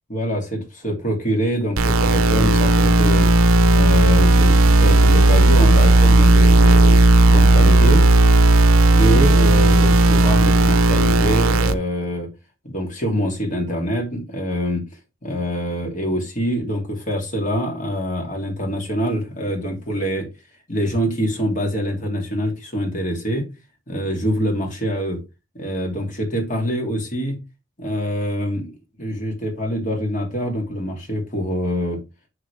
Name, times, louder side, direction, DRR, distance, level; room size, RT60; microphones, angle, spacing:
voice 1, 0.1-3.3 3.7-7.0 7.3-8.0 8.9-12.3 12.6-14.8 15.2-20.3 20.7-23.5 23.9-25.2 25.5-27.4 27.8-28.7 29.0-32.0, equal, 40° left, 2.7 m, -24 dB
sound 1, 1.8-11.7, right 2 dB, 90° right, 0.7 m, -14 dB
7.1 x 6.7 x 3.4 m
head